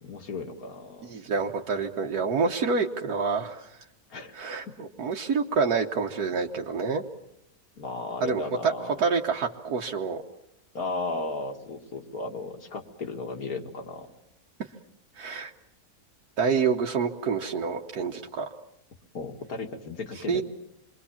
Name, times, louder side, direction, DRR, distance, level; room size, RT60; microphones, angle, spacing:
voice 1, 0.0-1.1 4.1-4.4 4.7-4.8 7.8-9.0 10.7-14.1 19.1-20.4, left 3 dB, 70° left, 5 dB, 2.5 m, -35 dB
voice 2, 1.0-3.8 4.3-7.0 8.2-8.7 9.0-10.2 15.2-15.5 16.4-18.5 20.3-20.4, right 5 dB, 80° right, 2 dB, 1.6 m, -27 dB
27.0 x 22.5 x 7.2 m, 0.78 s
omnidirectional pair, 1.6 m